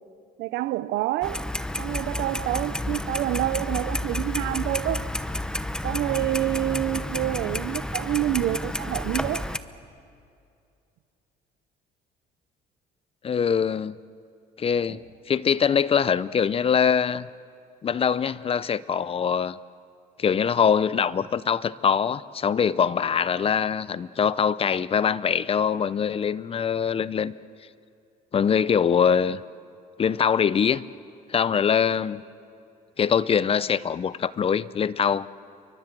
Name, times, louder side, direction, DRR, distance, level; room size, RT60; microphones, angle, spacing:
voice 1, 0.4-1.4 1.8-5.1 5.8-9.5 14.9-15.0, right 15 dB, 85° right, 0.8 m, -27 dB
Clock, 1.2-9.6, left 1 dB, 5° left, 0.9 m, -30 dB
voice 2, 13.2-14.0 14.6-15.0 15.3-17.3 17.8-19.6 20.2-27.3 28.3-29.4 30.0-30.8 31.3-32.2 33.0-35.3, left 7 dB, 35° left, 0.6 m, -23 dB
29.0 x 24.0 x 7.5 m
cardioid pair, 110°, 17 cm